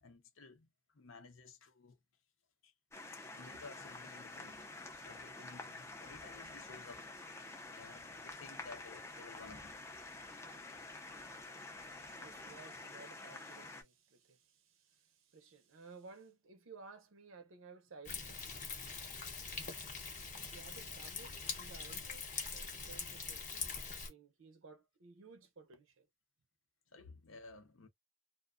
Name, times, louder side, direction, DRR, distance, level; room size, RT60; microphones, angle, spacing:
voice 1, 0.0-2.0 2.6-2.7 3.1-4.6 5.1-7.1 7.7-9.8 26.9-27.9, left 4 dB, 75° left, 0.7 m, -55 dB
sound 1, 2.9-13.8, left 2 dB, 15° left, 0.3 m, -49 dB
voice 2, 11.9-18.5 20.4-26.1, right 4 dB, 80° right, 0.6 m, -57 dB
Thunder, 18.1-24.1, left 5 dB, 35° left, 0.8 m, -43 dB
2.5 x 2.1 x 2.4 m
head